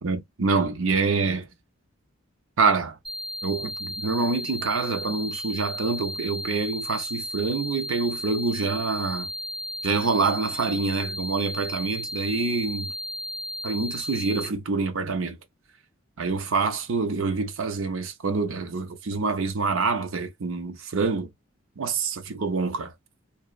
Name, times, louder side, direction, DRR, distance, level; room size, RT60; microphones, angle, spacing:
voice 1, 0.0-1.5 2.6-3.0 3.4-9.3 9.8-12.9 13.6-15.4 16.2-21.3 21.8-22.9, right 4 dB, 70° right, 0.6 m, -26 dB
sound 1, 3.0-14.5, left 1 dB, ahead, 0.6 m, -34 dB
2.9 x 2.0 x 2.3 m
head